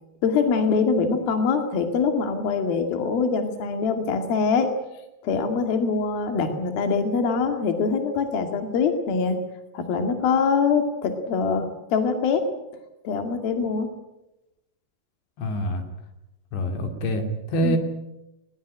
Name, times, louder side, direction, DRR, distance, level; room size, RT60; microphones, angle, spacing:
voice 1, 0.2-4.7 5.2-9.4 9.7-12.5 13.0-13.9 17.6-17.8, left 5 dB, 60° left, 6 dB, 3.8 m, -23 dB
voice 2, 15.4-15.8 16.5-17.8, equal, 80° left, 6 dB, 4.8 m, -25 dB
20.5 x 19.5 x 10.0 m, 0.94 s
omnidirectional pair, 5.0 m